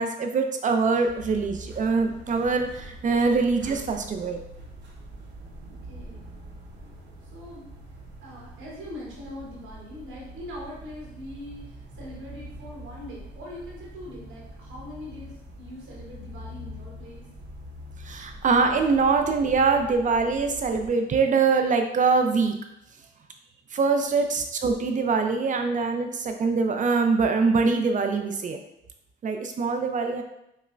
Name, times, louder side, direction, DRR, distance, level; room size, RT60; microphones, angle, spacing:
voice 1, 0.0-4.4 18.0-22.5 23.7-28.6 29.2-30.2, right 4 dB, 40° right, 5 dB, 0.4 m, -23 dB
sound 1, 1.0-20.9, equal, 65° right, 0.9 m, -44 dB
voice 2, 5.7-6.3 7.3-7.7 8.2-17.2 24.2-24.4, left 1 dB, 80° right, -4 dB, 1.2 m, -42 dB
5.3 x 2.1 x 2.5 m, 0.82 s
cardioid pair, 90°, 20 cm